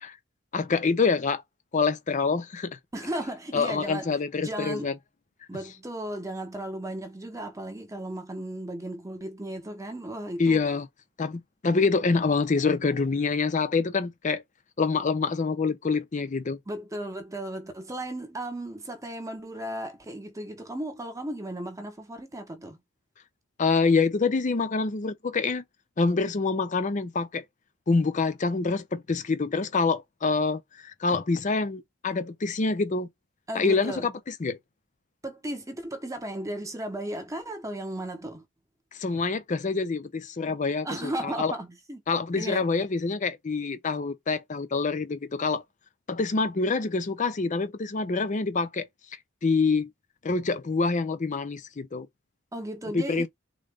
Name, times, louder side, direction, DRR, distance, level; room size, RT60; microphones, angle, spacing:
voice 1, 0.5-1.4 1.7-2.8 3.5-5.0 10.4-10.9 11.2-14.4 14.8-16.6 23.6-25.6 26.0-27.4 27.9-33.1 33.5-34.6 38.9-41.5 42.1-45.6 46.1-48.9 49.4-49.9 50.2-52.1 52.9-53.3, left 4 dB, 35° left, 0.5 m, -26 dB
voice 2, 2.9-4.9 5.5-10.6 16.7-22.8 33.5-34.1 35.2-38.5 40.8-42.0 42.3-42.7 52.5-53.3, right 1 dB, 15° right, 0.7 m, -35 dB
3.7 x 2.2 x 3.4 m
head